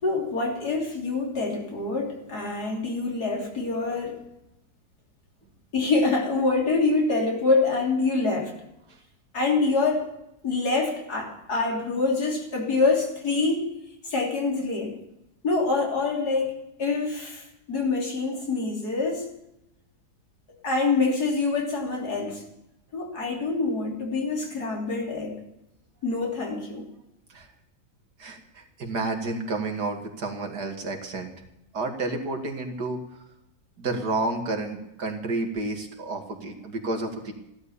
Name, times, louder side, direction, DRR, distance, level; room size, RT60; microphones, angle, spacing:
voice 1, 0.0-4.2 5.7-8.5 9.3-10.1 10.4-13.7 14.0-15.0 15.4-16.5 16.8-19.3 20.6-22.4 22.9-25.4 26.0-26.9, left 3 dB, 75° left, 1 dB, 3.8 m, -25 dB
voice 2, 28.2-31.3 31.7-33.0 33.8-37.3, right 3 dB, 80° right, 3 dB, 2.8 m, -30 dB
16.0 x 12.0 x 7.0 m, 0.84 s
omnidirectional pair, 1.7 m